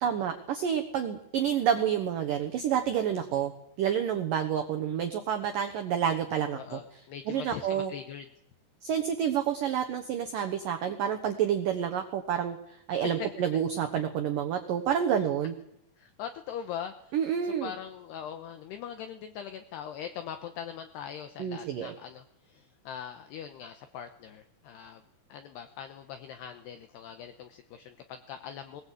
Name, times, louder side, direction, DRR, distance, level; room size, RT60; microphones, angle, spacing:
voice 1, 0.0-3.5 3.8-6.8 7.3-7.9 8.8-12.6 12.9-15.5 17.1-17.7 21.4-21.9, right 9 dB, 85° right, 6 dB, 1.9 m, -29 dB
voice 2, 6.5-8.3 13.0-13.3 16.0-17.2 17.4-25.0 25.3-28.8, left 8 dB, 75° left, 7 dB, 2.6 m, -41 dB
20.5 x 19.0 x 8.4 m, 0.80 s
omnidirectional pair, 5.8 m